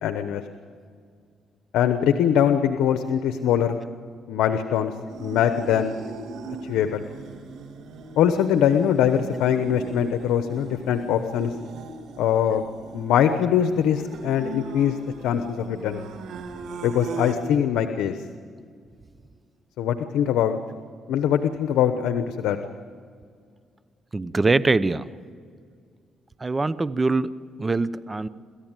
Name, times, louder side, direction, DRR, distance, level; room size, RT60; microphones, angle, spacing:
voice 1, 0.0-0.4 1.7-3.8 4.3-4.9 5.2-5.9 6.6-7.0 8.2-11.5 12.2-12.6 12.9-15.0 15.2-16.0 16.8-18.2 19.8-20.6 21.1-22.6, left 9 dB, 85° left, 8 dB, 1.0 m, -22 dB
sound 1, 5.1-17.4, right 4 dB, 75° right, 2.5 m, -39 dB
voice 2, 24.1-25.1 26.4-27.3 27.6-28.3, right 3 dB, 25° right, 16 dB, 0.8 m, -23 dB
28.0 x 14.0 x 9.1 m, 2.1 s
cardioid pair, 90°, 0 cm